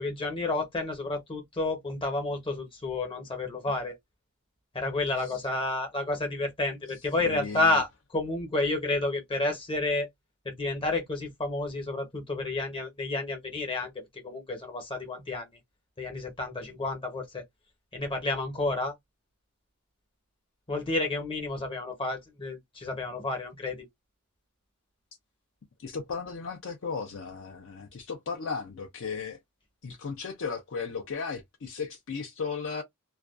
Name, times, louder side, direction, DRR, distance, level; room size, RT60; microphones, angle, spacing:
voice 1, 0.0-3.9 4.7-7.9 8.1-10.1 10.4-13.9 14.2-15.5 16.0-17.4 17.9-18.9 20.7-23.8, left 2 dB, 25° left, 0.9 m, -30 dB
voice 2, 5.1-5.5 6.9-7.8 25.8-29.4 29.8-32.8, left 5 dB, 60° left, 0.5 m, -36 dB
2.4 x 2.2 x 2.4 m
head